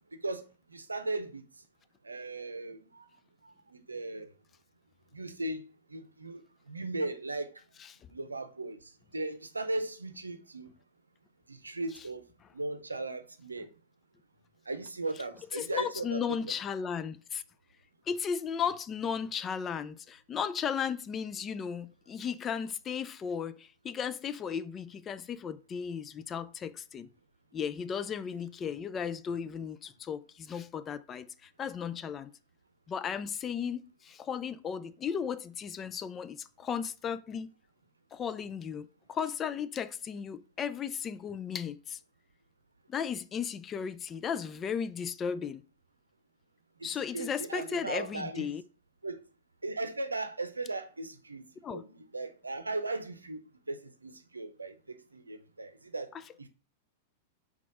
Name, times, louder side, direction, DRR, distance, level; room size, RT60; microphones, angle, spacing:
voice 1, 0.2-1.5 2.0-3.1 3.4-4.3 5.1-7.5 8.1-10.7 11.5-12.3 12.5-13.7 14.7-16.5 46.8-48.5 49.0-49.2 49.6-56.1 56.4-56.5, right 2 dB, 85° right, 0.6 m, -37 dB
voice 2, 15.5-17.4 18.1-27.1 27.5-32.3 32.9-37.5 38.1-42.0 42.9-45.6 46.8-48.6 51.6-51.8, left 7 dB, 25° left, 0.5 m, -35 dB
4.3 x 4.2 x 5.4 m
figure-of-eight pair, 95°, 0 cm